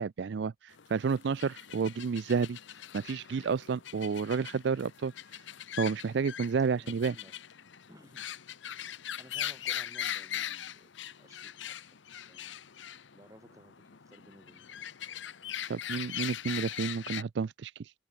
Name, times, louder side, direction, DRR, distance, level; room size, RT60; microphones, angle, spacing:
voice 1, 0.0-2.6 2.9-5.1 5.8-7.1 15.7-17.9, right 5 dB, 65° right, 0.4 m, -31 dB
sound 1, 0.7-17.2, left 10 dB, 75° left, 0.8 m, -41 dB
voice 2, 6.8-7.4 7.9-8.3 9.2-11.8 12.1-12.5 13.1-15.0, equal, 15° right, 7.5 m, -57 dB
head